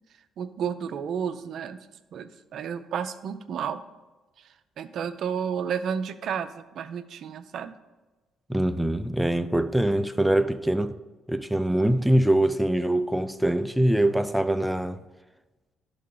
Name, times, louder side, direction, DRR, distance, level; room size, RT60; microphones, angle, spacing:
voice 1, 0.4-1.9 2.1-3.8 4.8-7.7, right 7 dB, 65° right, 0.5 m, -31 dB
voice 2, 8.5-11.0 11.3-15.0, right 1 dB, 5° right, 0.4 m, -23 dB
11.5 x 3.8 x 3.9 m
supercardioid pair, 75°, 0 cm